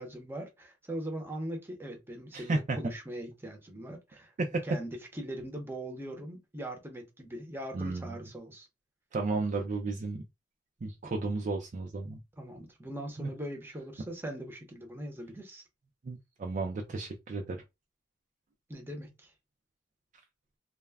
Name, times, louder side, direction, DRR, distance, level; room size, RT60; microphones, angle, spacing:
voice 1, 0.0-4.3 4.6-8.7 12.4-15.6 18.7-19.3, right 1 dB, 10° right, 0.7 m, -41 dB
voice 2, 2.3-2.9 4.4-4.6 7.7-8.2 9.1-10.2 10.8-12.2 13.2-13.3 16.0-17.6, right 3 dB, 40° right, 0.4 m, -33 dB
2.3 x 2.1 x 3.3 m
head